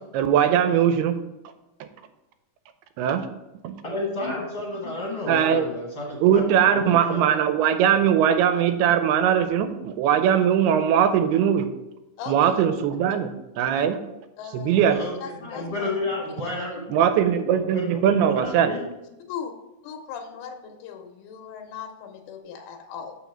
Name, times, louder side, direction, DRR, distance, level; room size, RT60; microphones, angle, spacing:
voice 1, 0.1-1.2 3.0-3.3 3.6-3.7 5.3-5.7 6.2-11.7 12.3-13.3 13.6-14.0 14.5-15.0 16.9-18.7, right 9 dB, 90° right, 9 dB, 2.6 m, -20 dB
voice 2, 3.8-6.4 6.8-7.2 14.8-18.9, left 2 dB, 55° left, -4 dB, 1.3 m, -32 dB
voice 3, 12.2-12.6 13.8-13.9 14.4-14.8 15.2-16.0 16.3-16.4 19.3-19.5 19.8-23.2, left 7 dB, 90° left, 4 dB, 2.7 m, -38 dB
7.1 x 5.9 x 4.4 m, 0.98 s
omnidirectional pair, 4.5 m